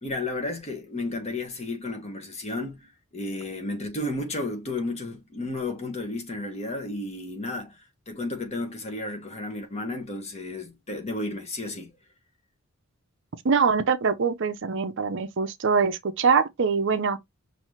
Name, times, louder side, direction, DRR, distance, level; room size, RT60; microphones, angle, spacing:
voice 1, 0.0-11.9, left 2 dB, 30° left, 1.2 m, -33 dB
voice 2, 13.4-17.2, right 5 dB, 55° right, 0.6 m, -23 dB
5.7 x 2.7 x 3.1 m
head